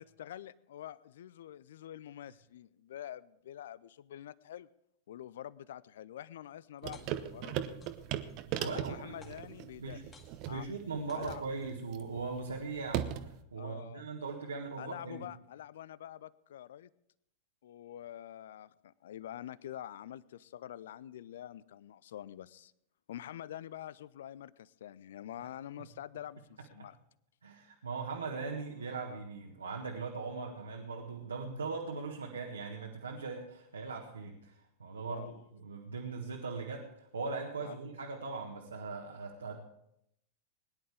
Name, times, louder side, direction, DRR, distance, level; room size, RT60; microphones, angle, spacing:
voice 1, 0.0-4.7 5.1-7.7 8.6-10.0 10.5-10.7 11.1-11.4 13.6-14.0 14.8-16.9 17.6-22.7 23.1-27.0 35.0-35.4 37.6-37.7, left 11 dB, 60° left, 20 dB, 0.5 m, -46 dB
sound 1, 6.8-7.4 7.8-8.3 8.6-9.6 10.1-10.7 11.1-11.7, left 4 dB, 20° left, 2.0 m, -58 dB
sound 2, 6.8-13.4, right 11 dB, 40° right, 0.9 m, -39 dB
voice 2, 8.6-9.2 9.8-10.0 10.5-15.2 27.4-35.2 35.5-39.6, right 4 dB, 75° right, 0 dB, 1.6 m, -40 dB
21.5 x 11.0 x 3.5 m, 0.78 s
figure-of-eight pair, 90°, 0 cm